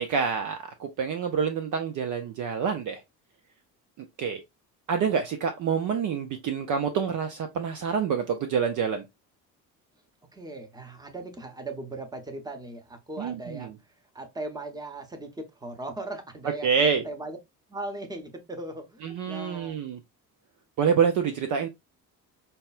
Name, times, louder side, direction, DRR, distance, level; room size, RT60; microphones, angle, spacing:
voice 1, 0.0-3.0 4.2-4.4 4.9-9.0 13.2-13.7 16.6-17.0 19.0-20.0 20.8-21.7, right 6 dB, 40° right, 0.5 m, -27 dB
voice 2, 10.3-17.4 17.7-19.8, right 2 dB, 10° right, 0.9 m, -38 dB
5.3 x 2.2 x 2.4 m
figure-of-eight pair, 55°, 50 cm